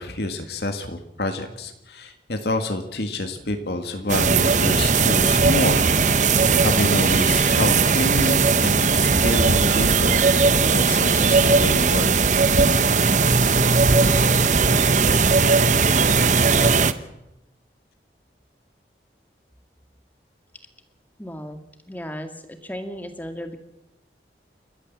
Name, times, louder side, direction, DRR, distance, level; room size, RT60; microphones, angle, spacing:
voice 1, 0.0-5.9 6.6-12.1, left 1 dB, 70° left, 6 dB, 1.9 m, -27 dB
sound 1, 4.1-16.9, right 4 dB, 45° right, 1.0 m, -18 dB
voice 2, 21.2-21.6 21.9-23.6, equal, 10° left, 7 dB, 2.1 m, -35 dB
29.5 x 13.5 x 7.4 m, 0.89 s
head